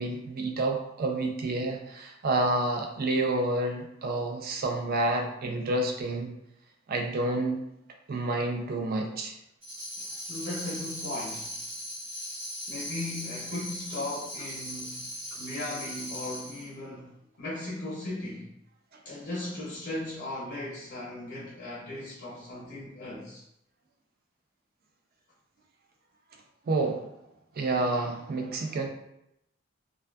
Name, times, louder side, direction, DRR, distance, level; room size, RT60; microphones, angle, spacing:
voice 1, 0.0-6.3 6.9-7.6 8.1-9.3 26.7-27.1 27.6-28.9, right 2 dB, 50° right, 3 dB, 0.4 m, -29 dB
Tambourine, 9.6-16.7, left 1 dB, 30° right, 0.9 m, -39 dB
voice 2, 10.3-11.6 12.7-17.1 17.4-18.5 19.0-23.4, left 2 dB, 60° left, -5 dB, 0.5 m, -37 dB
2.5 x 2.3 x 2.2 m, 0.80 s
head